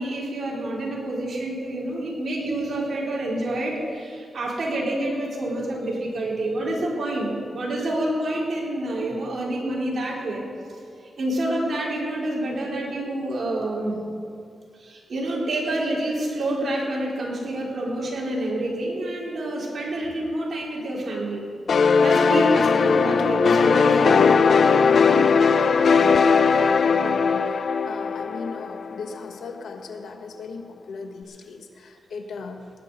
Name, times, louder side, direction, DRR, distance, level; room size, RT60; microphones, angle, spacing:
voice 1, 0.0-10.4 11.2-14.0 14.8-21.4 22.0-24.2, right 1 dB, 55° right, -4 dB, 4.0 m, -28 dB
sound 1, 21.7-29.2, left 5 dB, 60° left, 0.6 m, -19 dB
voice 2, 25.5-32.6, left 4 dB, 85° left, 5 dB, 1.3 m, -38 dB
18.5 x 6.2 x 9.0 m, 2.4 s
wide cardioid pair, 130°, 0 cm